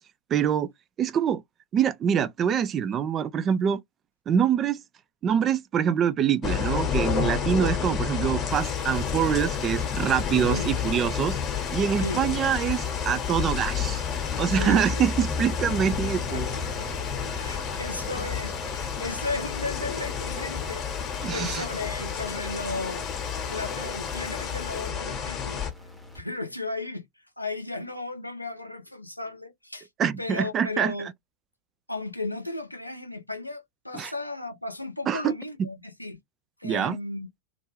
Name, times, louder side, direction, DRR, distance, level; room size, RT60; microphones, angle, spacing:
voice 1, 0.3-0.7 1.0-1.4 1.7-3.8 4.3-4.8 5.2-11.4 11.7-14.0 14.4-16.5 21.2-21.7 30.0-30.9 33.9-34.1 35.1-35.7 36.6-37.0, right 8 dB, 25° right, 0.3 m, -25 dB
sound 1, 6.4-25.7, left 7 dB, 25° left, 0.9 m, -30 dB
sound 2, 8.5-24.9, left 11 dB, 40° left, 0.5 m, -45 dB
sound 3, 12.1-26.2, left 2 dB, ahead, 0.7 m, -41 dB
voice 2, 14.5-15.1 16.3-23.1 23.5-25.6 26.1-27.1 27.4-29.9 30.2-31.1 31.9-36.2 36.6-37.3, left 2 dB, 85° left, 0.7 m, -35 dB
2.4 x 2.2 x 3.1 m
figure-of-eight pair, 90°, 0 cm